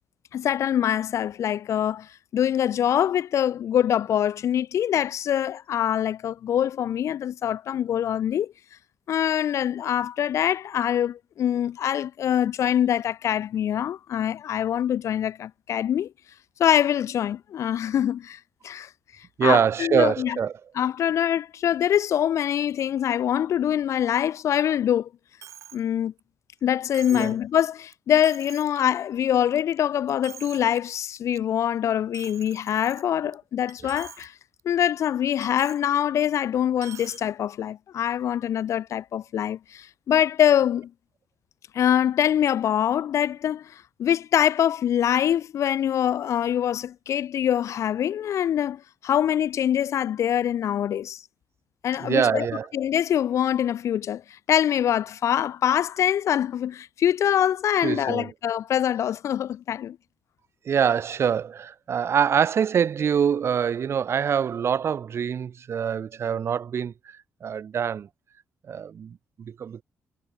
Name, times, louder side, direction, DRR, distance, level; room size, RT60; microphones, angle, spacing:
voice 1, 0.3-8.5 9.1-16.1 16.6-18.4 18.6-18.9 19.4-20.4 20.7-25.1 25.7-26.1 26.6-34.3 34.6-40.9 41.7-43.7 44.0-51.2 51.8-52.5 52.7-54.2 54.5-60.0, left 10 dB, 70° left, 0.9 m, -24 dB
voice 2, 19.4-20.5 27.1-27.3 52.0-52.6 57.8-58.3 60.6-66.9 67.4-68.1 68.7-69.8, right 7 dB, 55° right, 3.2 m, -24 dB
Coin (dropping), 25.4-25.8 26.2-26.3 26.9-27.4 27.9-28.0 28.2-28.8 29.3-29.8 30.1-30.8 31.2-31.4 32.1-33.3 33.7-34.3 34.6-34.7 35.4-35.8 36.8-37.2, right 10 dB, 75° right, 5.9 m, -45 dB
cardioid pair, 105°, 5 cm